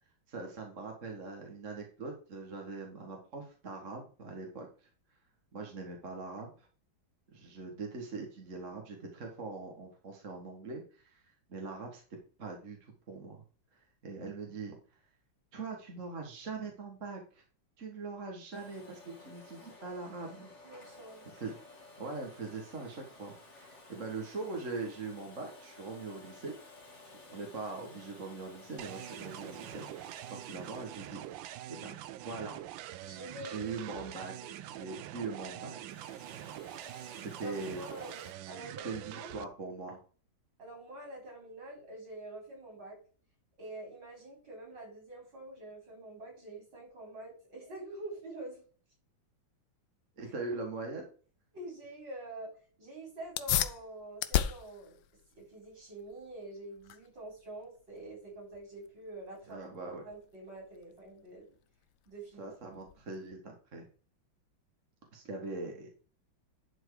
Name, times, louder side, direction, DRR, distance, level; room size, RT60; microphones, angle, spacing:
voice 1, 0.3-4.9 5.5-6.7 7.3-11.2 11.5-12.0 12.4-13.4 13.7-14.8 15.5-17.4 17.8-20.5 21.4-21.6 22.0-26.6 27.3-31.2 31.7-31.9 32.2-32.6 33.4-36.1 37.2-37.9 38.8-40.0 50.2-51.1 59.5-60.1 62.4-63.9 65.1-65.9, right 3 dB, 40° right, 2 dB, 1.8 m, -42 dB
Domestic sounds home sounds, 18.5-33.3 35.6-38.3, left 2 dB, 35° left, 2.8 m, -55 dB
voice 2, 20.6-21.2 33.0-33.7 37.4-39.4 40.6-43.0 43.6-48.6 50.2-50.3 51.5-55.0 55.4-61.6 62.1-62.5, right 1 dB, 65° right, 0 dB, 5.4 m, -46 dB
sound 1, 28.8-39.4, right 13 dB, 80° right, 1.3 m, -45 dB
sound 2, 53.2-63.3, left 12 dB, 75° left, 1.4 m, -38 dB
11.0 x 4.6 x 4.7 m, 0.41 s
omnidirectional pair, 2.1 m